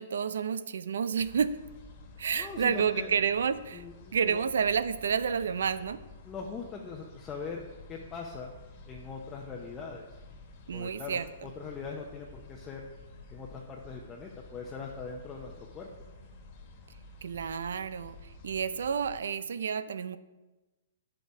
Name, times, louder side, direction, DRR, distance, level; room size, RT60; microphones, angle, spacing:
voice 1, 0.0-1.6 2.2-3.8 4.1-6.0 10.7-11.3 17.2-18.2 18.4-20.2, right 6 dB, 80° right, 14 dB, 0.5 m, -30 dB
sound 1, 1.2-19.2, left 2 dB, 40° left, 1.6 m, -51 dB
voice 2, 2.3-3.1 3.7-4.4 6.2-7.6 7.9-8.6 8.9-10.1 10.7-12.9 13.3-15.9, left 5 dB, 20° left, -1 dB, 0.9 m, -41 dB
9.2 x 6.8 x 4.8 m, 1.1 s
hypercardioid pair, 155°, 0 cm